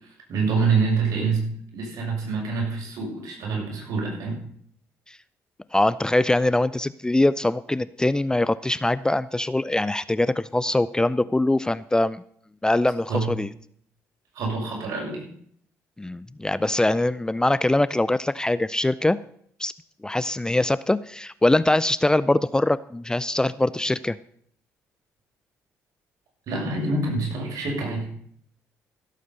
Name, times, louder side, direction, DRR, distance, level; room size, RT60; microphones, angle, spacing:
voice 1, 0.3-1.4 1.7-4.4 13.1-13.3 14.3-15.2 26.5-28.1, right 4 dB, 65° right, -1 dB, 6.5 m, -26 dB
voice 2, 5.7-12.2 12.6-13.5 16.0-19.2 19.6-19.7 20.0-24.2, left 2 dB, 10° left, 17 dB, 0.4 m, -23 dB
16.0 x 8.3 x 5.5 m, 0.64 s
supercardioid pair, 70°, 6 cm